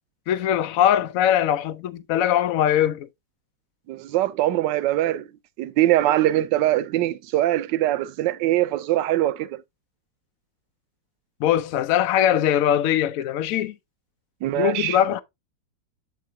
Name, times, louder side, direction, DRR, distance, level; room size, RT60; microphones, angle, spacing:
voice 1, 0.3-3.1 11.4-13.7 14.6-15.2, left 10 dB, 75° left, 0.7 m, -21 dB
voice 2, 3.9-5.3 5.6-9.6 14.4-15.0, right 14 dB, 75° right, 1.2 m, -22 dB
7.7 x 3.7 x 3.4 m
omnidirectional pair, 2.0 m